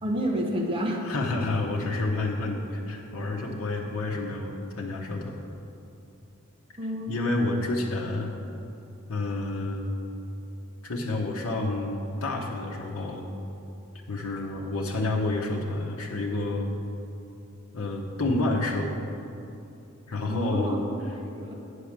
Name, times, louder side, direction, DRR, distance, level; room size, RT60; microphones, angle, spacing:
voice 1, 0.0-1.0 6.8-7.1 20.3-20.8 21.4-21.6, equal, 25° right, -1 dB, 0.9 m, -29 dB
voice 2, 1.0-5.4 7.1-8.3 9.1-9.9 10.8-13.3 14.1-16.7 17.7-19.0 20.1-20.7, left 2 dB, 80° left, -2 dB, 0.9 m, -29 dB
9.1 x 4.9 x 7.3 m, 2.7 s
head